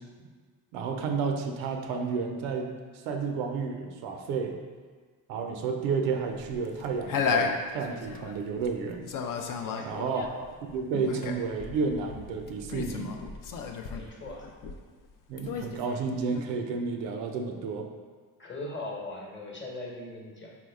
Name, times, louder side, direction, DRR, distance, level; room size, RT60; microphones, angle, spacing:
voice 1, 0.7-2.7 3.1-4.6 5.3-9.1 9.8-13.2 15.3-17.9, right 5 dB, 85° right, 3 dB, 0.5 m, -31 dB
sound 1, 6.4-8.7 9.1-15.1 15.4-16.4, left 6 dB, 50° left, 0.4 m, -33 dB
voice 2, 9.6-10.1 13.9-14.5 18.4-20.6, left 2 dB, 25° left, -1 dB, 1.0 m, -40 dB
4.4 x 2.1 x 3.4 m, 1.5 s
supercardioid pair, 60°, 43 cm